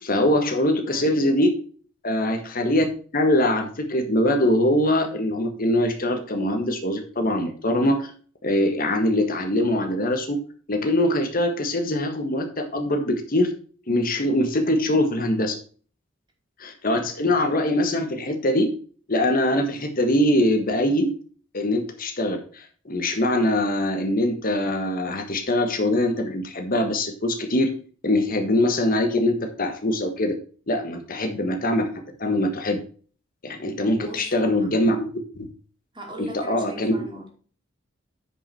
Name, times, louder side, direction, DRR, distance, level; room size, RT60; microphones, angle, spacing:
voice 1, 0.0-1.5 2.0-2.8 3.1-8.1 8.4-10.4 10.7-13.5 13.9-15.6 16.6-18.7 19.1-21.1 21.5-27.7 28.0-30.3 30.7-31.9 32.2-32.8 33.4-35.5 36.2-36.9, left 1 dB, 45° left, 1.4 m, -23 dB
voice 2, 0.9-1.2 33.7-34.7 35.9-37.3, right 1 dB, 25° right, 2.6 m, -40 dB
9.7 x 5.3 x 4.3 m
head